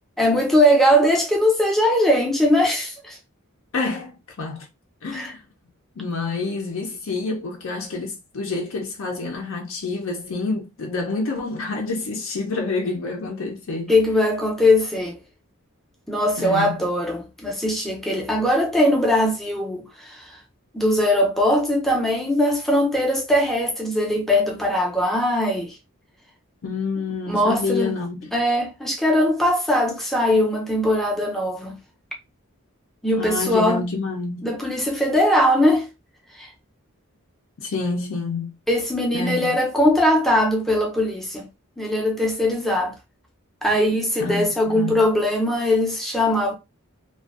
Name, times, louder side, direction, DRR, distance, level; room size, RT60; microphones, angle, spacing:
voice 1, 0.2-3.2 5.1-5.3 13.9-15.2 16.1-20.4 20.7-25.8 27.3-27.9 28.3-31.8 33.0-33.8 34.4-35.9 36.4-36.5 38.7-41.5 41.8-42.9 43.6-46.5, left 1 dB, ahead, 0.4 m, -20 dB
voice 2, 3.7-4.7 5.0-5.4 6.0-13.9 16.4-16.7 26.6-28.3 33.2-34.5 37.6-38.5 39.1-39.6 44.2-45.0, left 3 dB, 65° left, 0.4 m, -28 dB
2.5 x 2.2 x 2.3 m
head